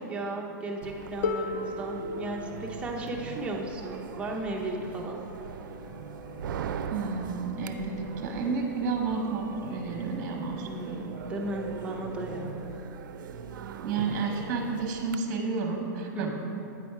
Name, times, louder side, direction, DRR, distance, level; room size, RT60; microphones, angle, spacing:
voice 1, 0.1-5.2 10.6-12.6 16.1-16.3, right 1 dB, 10° right, 0 dB, 0.6 m, -35 dB
sound 1, 0.8-15.2, right 7 dB, 80° right, 0.4 m, -41 dB
Harp, 1.2-7.0 8.1-8.2, left 4 dB, 55° left, 0.5 m, -38 dB
sound 2, 5.6-12.8, equal, 85° left, 1.3 m, -48 dB
voice 2, 6.9-11.0 13.8-16.3, right 4 dB, 35° right, 2 dB, 0.9 m, -31 dB
8.7 x 4.2 x 4.6 m, 2.9 s
supercardioid pair, 160°, 10 cm